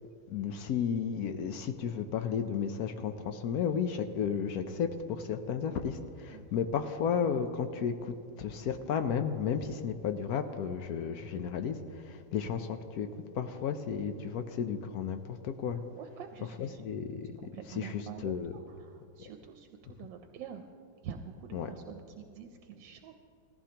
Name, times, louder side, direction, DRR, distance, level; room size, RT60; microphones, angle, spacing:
voice 1, 0.3-15.8 16.6-18.5 21.5-21.7, left 7 dB, 70° left, 8 dB, 0.9 m, -33 dB
voice 2, 15.9-16.8 17.1-20.6 21.0-23.1, right 8 dB, 80° right, 6 dB, 1.3 m, -46 dB
17.0 x 14.5 x 2.9 m, 2.3 s
omnidirectional pair, 2.0 m